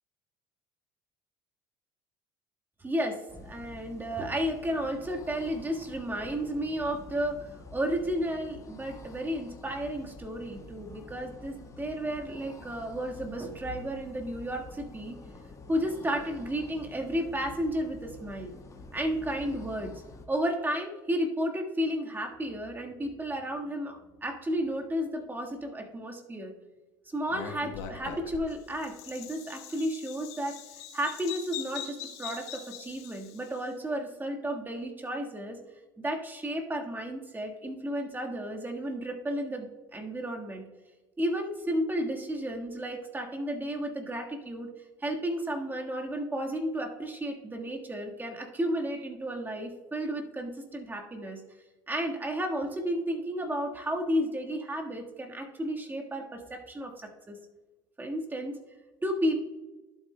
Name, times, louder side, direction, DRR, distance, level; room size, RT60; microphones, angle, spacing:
voice 1, 2.8-15.1 15.7-18.5 18.9-19.9 20.3-26.5 27.1-30.6 30.9-35.6 36.0-40.6 41.2-44.7 45.0-51.4 51.9-57.4 58.0-58.6 59.0-59.4, equal, 15° right, 2 dB, 1.5 m, -33 dB
sound 1, 3.3-20.3, left 3 dB, 30° left, 1.3 m, -48 dB
Bird vocalization bird call bird song, 27.3-33.6, left 8 dB, 75° left, 1.2 m, -42 dB
12.0 x 7.8 x 2.2 m, 1.1 s
hypercardioid pair, 75°, 11 cm